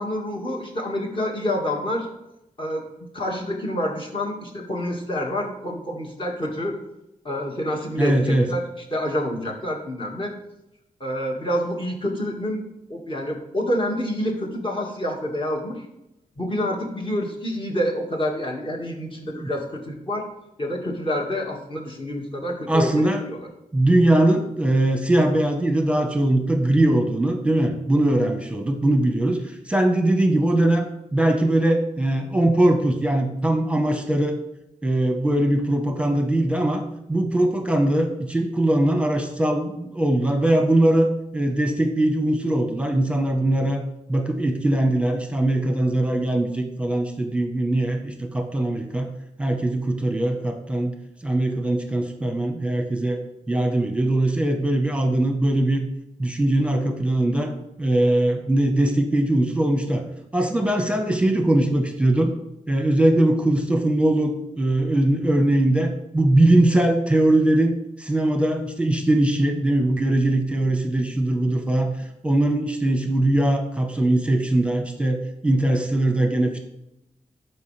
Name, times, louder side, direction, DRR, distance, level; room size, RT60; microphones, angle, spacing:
voice 1, 0.0-2.1 2.6-2.8 3.1-6.8 7.2-8.6 8.9-10.3 11.0-12.6 12.9-15.8 16.4-20.3 20.6-23.5 60.9-61.0, left 1 dB, 40° left, -1 dB, 1.9 m, -27 dB
voice 2, 8.0-8.5 19.4-19.5 22.7-23.2 23.7-29.4 29.7-30.9 31.1-34.4 34.8-36.8 37.1-41.1 41.3-43.8 44.1-49.1 49.4-50.9 51.2-53.2 53.5-55.8 56.2-57.5 57.8-60.0 60.3-62.3 62.7-71.9 72.2-76.6, right 1 dB, 10° right, 4 dB, 1.0 m, -21 dB
11.5 x 4.6 x 3.3 m, 0.86 s
wide cardioid pair, 80°, 14 cm